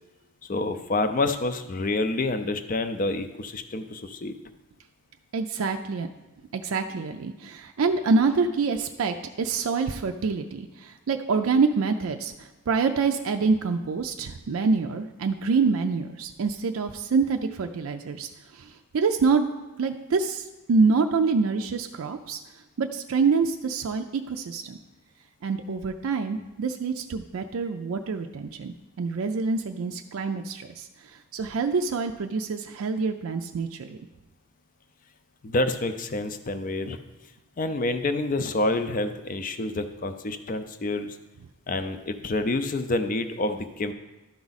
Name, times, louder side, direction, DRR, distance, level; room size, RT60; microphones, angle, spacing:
voice 1, 0.5-4.3 35.4-37.0 37.6-41.2 41.7-43.9, left 2 dB, 40° left, 9 dB, 0.5 m, -28 dB
voice 2, 5.3-6.1 6.5-19.5 19.8-22.4 22.8-24.8 25.4-30.9 31.3-34.0, right 4 dB, 75° right, 5 dB, 0.4 m, -26 dB
11.5 x 4.7 x 4.0 m, 1.1 s
head